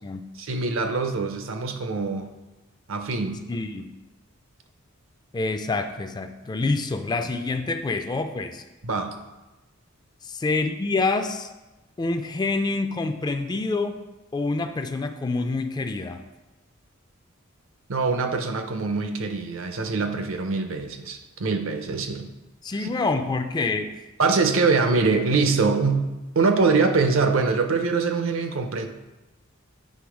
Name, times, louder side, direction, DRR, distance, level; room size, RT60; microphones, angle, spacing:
voice 1, 0.4-2.3 2.9-3.4 8.8-9.1 17.9-22.3 22.8-22.9 24.2-26.1 26.3-28.9, right 4 dB, 70° right, 7 dB, 0.6 m, -23 dB
voice 2, 3.5-3.9 5.3-8.6 10.2-11.5 12.0-14.0 14.3-16.2 22.6-24.0, left 3 dB, 20° left, 7 dB, 0.3 m, -27 dB
7.7 x 3.3 x 4.9 m, 1.1 s
head